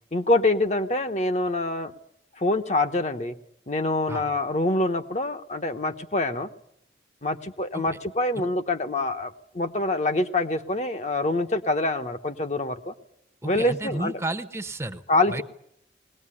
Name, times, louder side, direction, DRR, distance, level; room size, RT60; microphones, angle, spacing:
voice 1, 0.1-1.9 2.4-3.3 3.7-6.5 7.2-12.9 13.4-14.1 15.1-15.4, left 2 dB, 40° left, 7 dB, 1.0 m, -25 dB
voice 2, 13.4-15.0 15.3-15.4, right 2 dB, 15° right, 8 dB, 0.9 m, -32 dB
21.0 x 18.5 x 9.8 m, 0.76 s
head